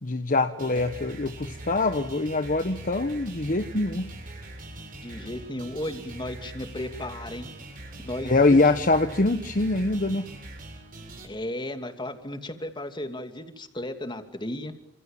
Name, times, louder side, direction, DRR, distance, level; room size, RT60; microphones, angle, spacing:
voice 1, 0.0-4.1 8.2-10.3, left 2 dB, 45° left, 8 dB, 1.2 m, -24 dB
sound 1, 0.6-11.2, right 1 dB, 50° right, 7.8 m, -42 dB
voice 2, 5.0-7.5 8.0-8.8 11.2-14.7, left 1 dB, 25° left, 7 dB, 2.7 m, -35 dB
29.5 x 27.0 x 7.3 m, 0.77 s
head